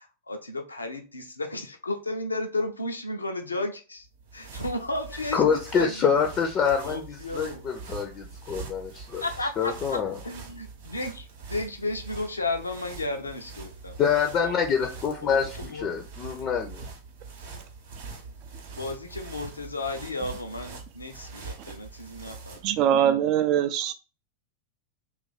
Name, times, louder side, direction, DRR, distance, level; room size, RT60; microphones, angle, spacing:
voice 1, 0.0-4.1 4.3-6.2 6.8-7.6 9.2-10.0 10.2-14.0 14.4-14.5 15.2-15.9 18.8-22.6, left 2 dB, 80° left, 0.6 m, -33 dB
sound 1, 4.0-22.8, right 4 dB, 55° right, 0.8 m, -43 dB
voice 2, 5.3-9.2 9.6-10.1 14.0-16.8, left 6 dB, 30° left, 0.5 m, -26 dB
voice 3, 22.6-23.9, right 10 dB, 40° right, 0.4 m, -22 dB
2.9 x 2.4 x 4.0 m
figure-of-eight pair, 90°, 0 cm